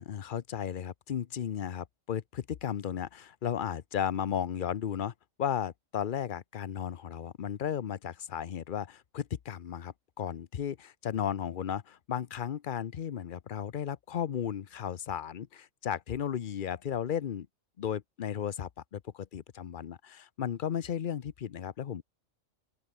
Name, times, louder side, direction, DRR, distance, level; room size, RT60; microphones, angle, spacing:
voice 1, 0.0-17.5 17.8-22.0, left 9 dB, 50° left, 0.7 m, -35 dB
open air
omnidirectional pair, 1.3 m